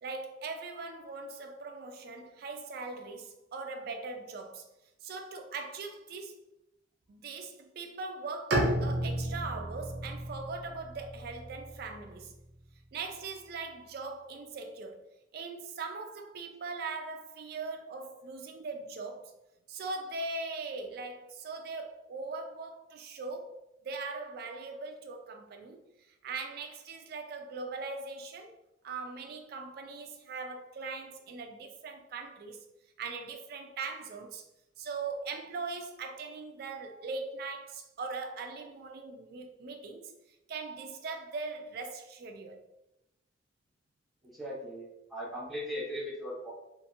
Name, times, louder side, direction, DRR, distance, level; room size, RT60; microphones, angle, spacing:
voice 1, 0.0-4.7 5.0-6.4 7.1-12.3 12.9-15.0 15.3-19.3 19.7-23.6 23.8-25.8 26.1-28.6 28.8-32.6 33.0-34.5 34.8-40.1 40.5-42.6, right 4 dB, 55° right, 0.3 m, -40 dB
Bowed string instrument, 8.5-12.4, right 1 dB, 85° right, 0.7 m, -33 dB
voice 2, 44.2-46.5, equal, ahead, 0.9 m, -38 dB
2.7 x 2.5 x 2.5 m
head